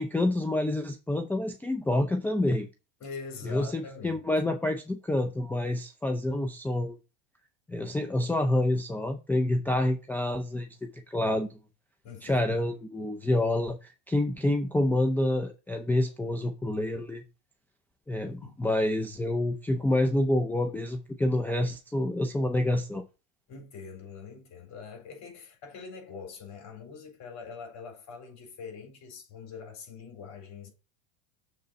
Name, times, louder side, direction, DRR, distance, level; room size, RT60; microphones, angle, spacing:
voice 1, 0.0-2.7 3.4-7.0 7.7-11.6 12.2-17.2 18.1-23.0, left 1 dB, 5° left, 0.5 m, -28 dB
voice 2, 3.0-4.2 12.0-12.7 18.3-18.6 23.5-30.7, left 5 dB, 45° left, 4.1 m, -43 dB
6.7 x 3.9 x 5.2 m
supercardioid pair, 115°, 39 cm